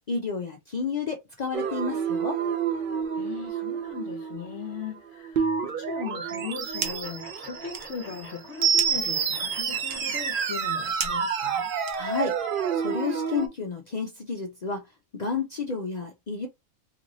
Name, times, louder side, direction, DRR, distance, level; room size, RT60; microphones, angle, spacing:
voice 1, 0.1-2.4 11.9-12.4 12.7-14.8 15.1-16.5, left 4 dB, 80° left, 0.3 m, -31 dB
sound 1, 1.5-13.5, right 7 dB, 75° right, 0.5 m, -29 dB
voice 2, 3.1-11.7, left 7 dB, 60° left, 0.8 m, -38 dB
sound 2, 6.3-7.2 7.5-12.4, right 6 dB, 60° right, 0.8 m, -38 dB
sound 3, 6.8-11.4, equal, 10° left, 0.8 m, -47 dB
3.1 x 3.0 x 2.6 m
omnidirectional pair, 1.5 m